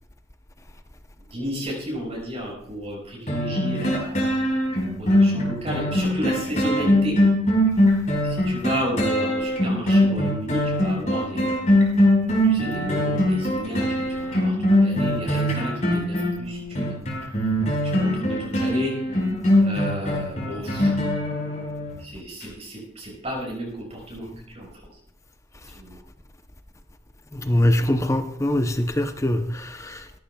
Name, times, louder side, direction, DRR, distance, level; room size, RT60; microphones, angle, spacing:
voice 1, 1.3-4.2 4.8-7.1 8.2-11.6 12.4-17.5 17.8-18.9 19.6-20.9 22.0-24.7 25.7-26.0, equal, 35° right, 5.7 m, -32 dB
sound 1, 3.3-22.0 22.4-22.5, left 1 dB, 40° left, 5.1 m, -21 dB
voice 2, 27.3-30.2, left 1 dB, 15° left, 0.7 m, -23 dB
17.5 x 14.5 x 2.3 m
head